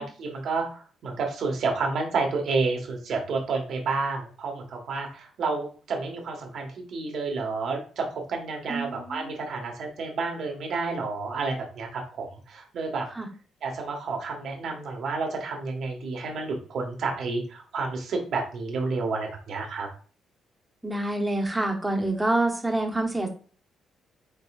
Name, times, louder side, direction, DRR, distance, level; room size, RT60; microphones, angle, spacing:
voice 1, 0.0-13.1 13.6-19.9, right 4 dB, 65° right, 2 dB, 1.4 m, -30 dB
voice 2, 8.7-9.3 13.2-13.3 20.8-23.3, right 2 dB, 10° right, 3 dB, 1.1 m, -27 dB
5.3 x 3.8 x 2.4 m, 0.40 s
cardioid pair, 90°, 0 cm